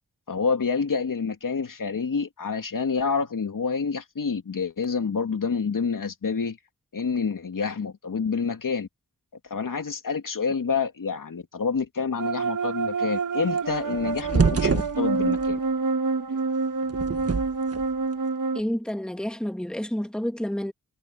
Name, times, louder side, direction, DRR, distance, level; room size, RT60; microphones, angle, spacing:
voice 1, 0.3-6.6 6.9-8.9 9.5-15.6, left 5 dB, 65° left, 2.9 m, -28 dB
sound 1, 12.2-18.6, right 4 dB, 65° right, 1.9 m, -27 dB
sound 2, 13.6-15.5 16.8-17.9, right 5 dB, 45° right, 1.4 m, -25 dB
voice 2, 18.5-20.7, equal, ahead, 2.0 m, -29 dB
cardioid pair, 60°, 34 cm